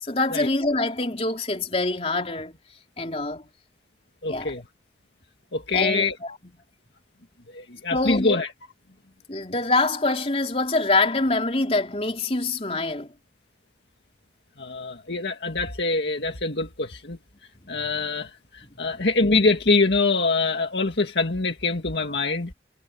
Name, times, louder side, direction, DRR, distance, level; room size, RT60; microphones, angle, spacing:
voice 1, 0.0-2.5 3.0-3.5 4.3-4.5 5.7-6.5 7.9-8.4 9.3-13.1 18.9-19.0, left 2 dB, 35° left, 3.9 m, -25 dB
voice 2, 4.2-4.6 5.5-6.2 7.5-8.5 14.6-17.2 17.7-22.5, left 3 dB, 80° left, 1.9 m, -24 dB
head